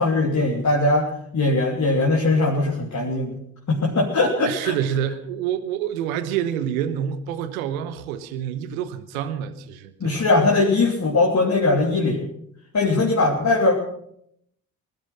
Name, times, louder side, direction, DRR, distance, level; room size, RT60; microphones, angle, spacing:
voice 1, 0.0-3.4 3.7-4.7 10.0-12.3 12.7-13.7, left 2 dB, 45° left, 3.1 m, -20 dB
voice 2, 4.4-10.2, right 9 dB, 85° right, 1.1 m, -27 dB
19.5 x 12.0 x 5.8 m
hypercardioid pair, 40°, 40 cm